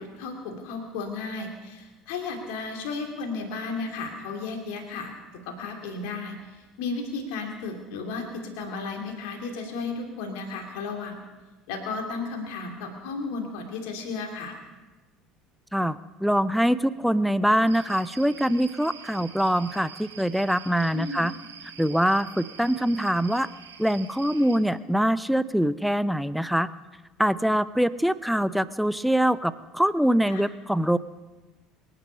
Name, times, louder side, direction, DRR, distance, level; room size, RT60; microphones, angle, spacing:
voice 1, 0.0-5.1 5.5-11.3 11.7-14.6 20.9-21.2 30.3-30.4, left 4 dB, 60° left, 3 dB, 2.8 m, -34 dB
voice 2, 15.7-21.3 21.8-23.5 23.8-26.7 27.2-31.0, equal, ahead, 16 dB, 0.6 m, -24 dB
sound 1, 17.7-24.6, right 7 dB, 75° right, 1.3 m, -46 dB
24.5 x 10.0 x 5.4 m, 1.2 s
figure-of-eight pair, 65°, 0 cm